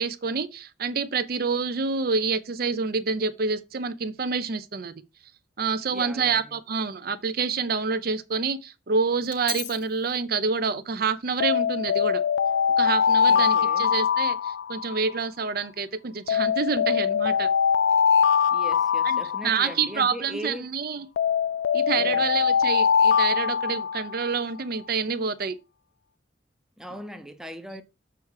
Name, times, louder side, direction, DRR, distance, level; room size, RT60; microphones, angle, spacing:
voice 1, 0.0-4.9 5.6-12.2 12.8-17.5 19.0-21.1 21.7-25.6, right 5 dB, 50° right, 0.5 m, -27 dB
voice 2, 5.9-6.6 13.3-13.9 18.5-20.7 21.9-22.2 26.8-27.8, equal, 5° right, 0.6 m, -39 dB
Alarm, 9.3-9.7 11.4-15.2 16.3-20.0 21.2-24.4, left 7 dB, 70° left, 0.3 m, -22 dB
7.0 x 4.7 x 4.7 m
head